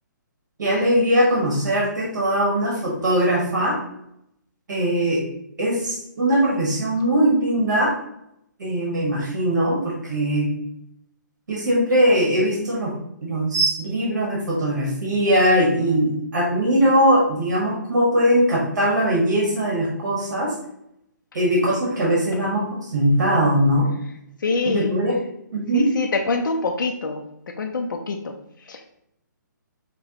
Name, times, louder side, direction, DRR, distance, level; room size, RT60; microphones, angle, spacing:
voice 1, 0.6-3.8 4.7-5.2 5.6-7.9 8.6-10.5 11.5-12.9 13.2-20.5 21.3-23.9 24.6-25.2 25.5-25.9, equal, 65° right, -3 dB, 1.5 m, -20 dB
voice 2, 24.4-25.0 25.7-27.2 27.6-28.3 28.6-28.9, left 3 dB, 90° left, 2 dB, 0.6 m, -25 dB
6.6 x 2.2 x 2.9 m, 0.78 s
hypercardioid pair, 175°, 11 cm